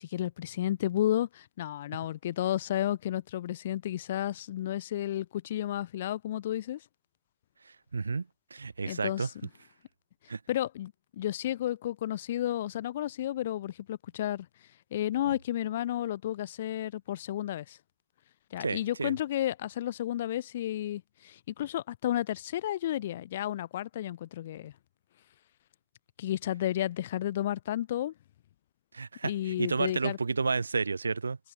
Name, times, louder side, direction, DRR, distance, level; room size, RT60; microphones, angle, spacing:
voice 1, 0.0-6.8 8.9-9.3 10.5-14.5 14.9-17.8 18.5-24.7 26.2-28.1 29.2-30.2, left 12 dB, 55° left, 3.0 m, -32 dB
voice 2, 7.9-8.2 8.5-9.3 10.3-10.4 18.6-19.1 28.9-31.4, right 4 dB, 75° right, 4.1 m, -31 dB
figure-of-eight pair, 100°, 0 cm